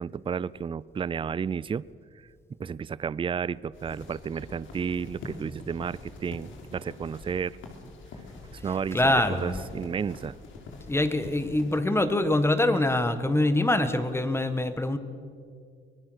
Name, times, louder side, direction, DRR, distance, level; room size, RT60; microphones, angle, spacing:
voice 1, 0.0-1.8 2.6-7.6 8.5-10.3, right 6 dB, 25° right, 20 dB, 0.4 m, -32 dB
sound 1, 3.7-11.8, left 3 dB, 75° left, 3.5 m, -45 dB
voice 2, 8.9-9.6 10.9-15.0, left 1 dB, 10° left, 10 dB, 1.5 m, -24 dB
24.0 x 19.0 x 6.4 m, 2.2 s
cardioid pair, 90°, 20 cm